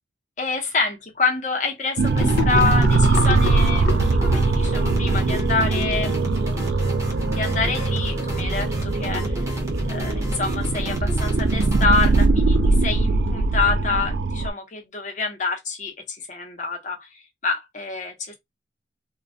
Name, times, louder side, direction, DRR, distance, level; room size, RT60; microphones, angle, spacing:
voice 1, 0.4-6.2 7.3-9.3 9.9-17.1 17.4-18.3, left 4 dB, 40° left, 0.7 m, -27 dB
sound 1, 2.0-12.3, equal, 15° right, 0.6 m, -29 dB
sound 2, 2.0-14.5, right 3 dB, 60° right, 0.3 m, -21 dB
Gurgling / Sink (filling or washing), 2.2-6.6, left 4 dB, 75° left, 0.3 m, -31 dB
2.2 x 2.1 x 2.6 m
head